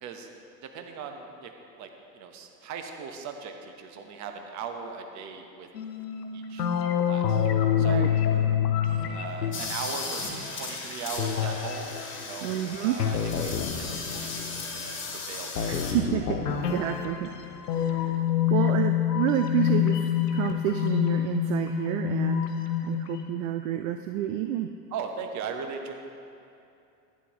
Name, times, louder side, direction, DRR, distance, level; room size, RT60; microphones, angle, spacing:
voice 1, 0.6-1.5 1.8-5.7 6.3-6.7 7.1-7.4 7.8-8.1 9.0-15.8 24.9-25.9, right 6 dB, 35° right, 5 dB, 1.0 m, -39 dB
sound 1, 5.7-10.5 11.2-14.9 15.6-23.2, left 9 dB, 75° left, 0.8 m, -27 dB
voice 2, 7.8-8.1 12.4-13.0 15.7-17.3 17.6-18.2 18.5-22.6 22.8-24.7, right 11 dB, 55° right, 7 dB, 0.5 m, -29 dB
sound 2, 8.3-8.6 8.9-9.2 9.5-9.8 10.2-10.5 11.1-11.3 15.9-16.9, right 1 dB, 15° right, 1.8 m, -44 dB
sound 3, 9.5-15.9, left 3 dB, 25° left, 1.7 m, -37 dB
11.0 x 9.4 x 3.0 m, 2.6 s
figure-of-eight pair, 80°, 48 cm